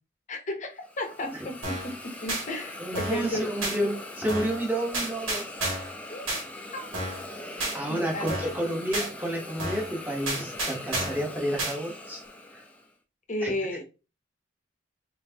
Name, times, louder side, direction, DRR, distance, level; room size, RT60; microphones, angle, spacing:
voice 1, 0.3-3.5 6.1-6.3 6.7-6.9 7.9-8.5 13.3-13.8, left 1 dB, 35° left, 0.8 m, -33 dB
Hiss, 0.8-12.9, left 1 dB, 5° left, 0.5 m, -41 dB
sound 1, 1.6-1.9 2.3-2.4 3.0-3.3 3.6-3.8 4.3-4.6 4.9-5.9 6.3-6.4 6.9-7.3 7.6-7.8 8.3-8.6 8.9-9.1 9.6-9.9 10.3-11.2 11.6-11.8, right 1 dB, 90° right, 2.2 m, -31 dB
voice 2, 2.8-5.5 7.7-12.2 12.5-12.6 13.4-13.5, right 1 dB, 10° right, 1.1 m, -30 dB
4.6 x 3.1 x 2.8 m
head